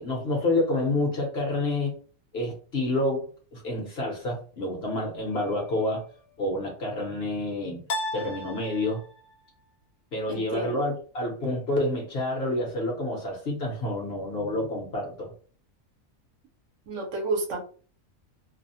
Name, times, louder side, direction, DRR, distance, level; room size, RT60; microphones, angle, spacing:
voice 1, 0.0-1.9 2.3-3.3 3.5-6.0 6.4-7.8 8.1-9.0 10.1-15.3, left 2 dB, 55° left, -1 dB, 0.9 m, -28 dB
sound 1, 5.3-6.0 7.9-9.4, left 1 dB, 80° left, 1.0 m, -36 dB
voice 2, 10.3-10.8 16.9-17.6, right 3 dB, 65° right, 1 dB, 1.0 m, -30 dB
2.6 x 2.0 x 2.7 m, 0.41 s
omnidirectional pair, 1.4 m